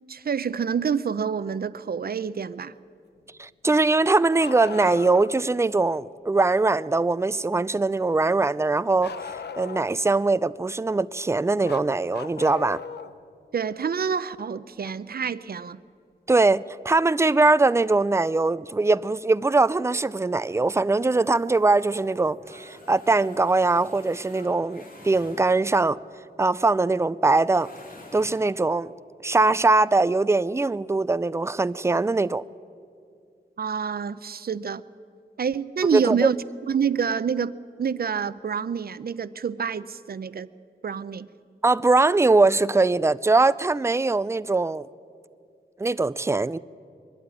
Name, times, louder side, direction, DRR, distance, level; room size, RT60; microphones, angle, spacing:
voice 1, 0.1-2.7 13.5-15.8 33.6-34.8 35.4-36.4 36.7-40.5 40.8-41.3, right 6 dB, 60° right, 0.6 m, -27 dB
voice 2, 3.4-9.1 9.6-12.8 16.3-26.0 26.4-27.7 28.1-28.9 29.2-32.4 35.9-36.3 41.6-44.9 45.8-46.6, right 3 dB, 15° right, 0.4 m, -21 dB
Bark, 4.4-5.5 9.0-10.0 11.6-13.2 14.8-14.9 16.8-16.9 18.0-18.1, left 6 dB, 70° left, 0.7 m, -38 dB
sound 1, 21.1-25.9 27.5-28.7, left 2 dB, 55° left, 2.7 m, -48 dB
22.0 x 12.0 x 9.8 m
wide cardioid pair, 90°, 18 cm